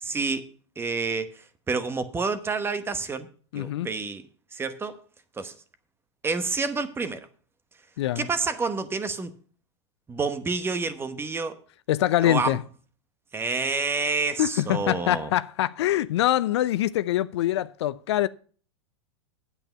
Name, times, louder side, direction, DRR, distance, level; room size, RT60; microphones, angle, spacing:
voice 1, 0.0-0.5 0.8-1.3 1.7-3.3 3.5-4.2 4.5-5.0 5.4-5.5 6.2-7.3 8.2-9.3 10.1-11.6 12.2-12.6 13.3-15.3, right 4 dB, 15° right, 1.0 m, -28 dB
voice 2, 3.5-3.9 8.0-8.3 11.9-12.6 14.4-18.3, left 13 dB, 65° left, 0.5 m, -24 dB
8.8 x 8.2 x 5.4 m
hypercardioid pair, 105°, 15 cm